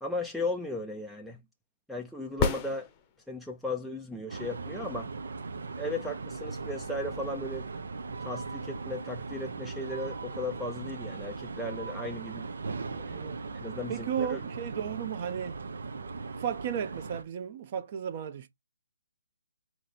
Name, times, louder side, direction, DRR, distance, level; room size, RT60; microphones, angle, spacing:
voice 1, 0.0-1.4 1.9-2.9 3.3-5.1 5.8-7.7 8.2-12.4 12.9-13.2 13.6-14.4, left 2 dB, ahead, 0.4 m, -36 dB
sound 1, 2.3-3.5 7.4-7.5, left 5 dB, 20° left, 0.7 m, -31 dB
sound 2, 4.3-17.2, right 4 dB, 75° right, 0.8 m, -39 dB
voice 2, 13.9-15.5 16.4-18.5, right 8 dB, 40° right, 0.8 m, -34 dB
4.2 x 3.1 x 4.1 m
hypercardioid pair, 155°, 0 cm